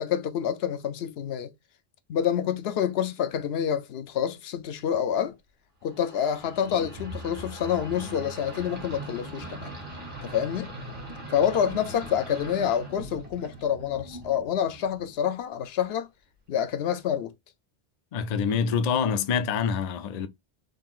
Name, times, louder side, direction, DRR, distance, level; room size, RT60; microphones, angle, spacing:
voice 1, 0.0-1.5 2.1-5.3 5.8-9.7 10.2-10.7 11.3-16.1 16.5-17.3, left 9 dB, 75° left, 0.8 m, -27 dB
sound 1, 5.9-15.2, right 1 dB, 55° right, 1.9 m, -41 dB
voice 2, 18.1-20.3, left 6 dB, 55° left, 0.5 m, -26 dB
3.8 x 3.7 x 2.4 m
omnidirectional pair, 1.1 m